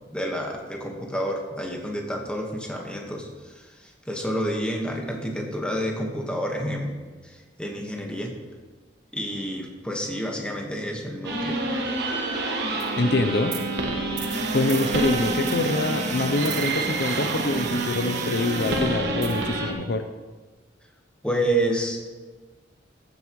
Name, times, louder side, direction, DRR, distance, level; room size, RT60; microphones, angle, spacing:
voice 1, 0.1-6.9 7.2-8.3 9.1-11.8 21.2-22.1, right 1 dB, 5° left, 0 dB, 1.4 m, -29 dB
sound 1, 11.2-19.7, right 2 dB, 60° right, 1.4 m, -28 dB
voice 2, 13.0-13.5 14.5-20.1, left 2 dB, 60° left, 8 dB, 0.6 m, -25 dB
sound 2, 14.3-19.5, right 7 dB, 40° right, 0.5 m, -36 dB
14.5 x 9.4 x 3.1 m, 1.3 s
head